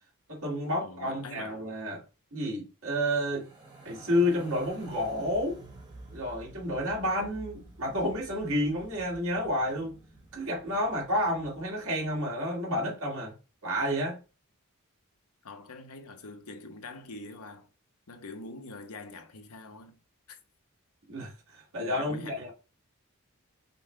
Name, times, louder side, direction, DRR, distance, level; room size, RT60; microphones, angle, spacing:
voice 1, 0.3-2.0 2.3-3.5 3.8-5.6 6.1-9.9 10.3-13.4 13.6-14.2 21.1-22.5, equal, 70° right, 2.0 m, -30 dB
voice 2, 0.8-1.6 15.4-17.7 18.1-20.0 20.3-20.4 21.8-22.5, left 3 dB, 85° left, 0.8 m, -44 dB
sound 1, 3.2-12.5, right 2 dB, 20° right, 1.1 m, -50 dB
5.4 x 2.2 x 4.4 m
head